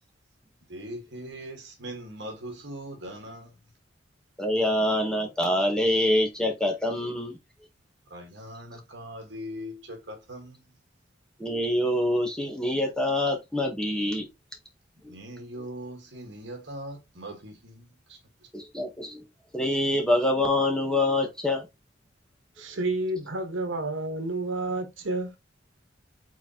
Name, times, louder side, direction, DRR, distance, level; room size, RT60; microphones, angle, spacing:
voice 1, 0.7-3.5 8.1-10.6 15.0-18.2, equal, 65° right, 1.5 m, -40 dB
voice 2, 4.4-7.4 11.4-14.3 18.5-19.2 19.5-21.7, left 1 dB, 5° left, 0.9 m, -25 dB
voice 3, 22.6-25.4, right 2 dB, 85° right, 1.1 m, -30 dB
4.8 x 3.9 x 2.8 m
head